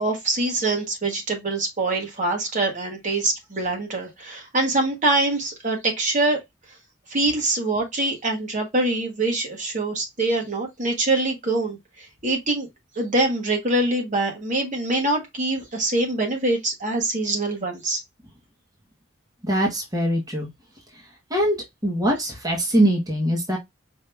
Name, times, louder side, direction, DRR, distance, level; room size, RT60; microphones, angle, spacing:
voice 1, 0.0-6.4 7.1-12.7 12.9-18.0, right 2 dB, 40° right, 1.5 m, -24 dB
voice 2, 19.4-20.5 21.3-21.6 21.8-23.6, right 1 dB, 20° right, 1.3 m, -22 dB
5.2 x 2.8 x 3.3 m
head